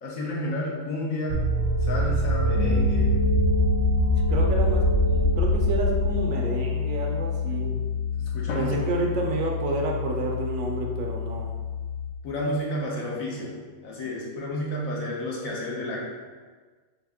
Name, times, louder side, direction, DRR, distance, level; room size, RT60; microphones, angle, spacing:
voice 1, 0.0-1.4 1.8-3.1 8.2-8.8 12.2-13.6 13.8-16.0, left 1 dB, 70° left, -3 dB, 1.3 m, -31 dB
sound 1, 1.3-6.3, right 1 dB, 90° right, 1.2 m, -23 dB
Piano, 2.5-12.1, left 6 dB, 35° left, 0.8 m, -28 dB
voice 2, 4.3-7.9 8.5-11.5, right 2 dB, 70° right, 1 dB, 0.9 m, -30 dB
Drum, 8.5-10.5, left 4 dB, 90° left, 1.1 m, -40 dB
4.1 x 3.3 x 3.5 m, 1.4 s
omnidirectional pair, 1.5 m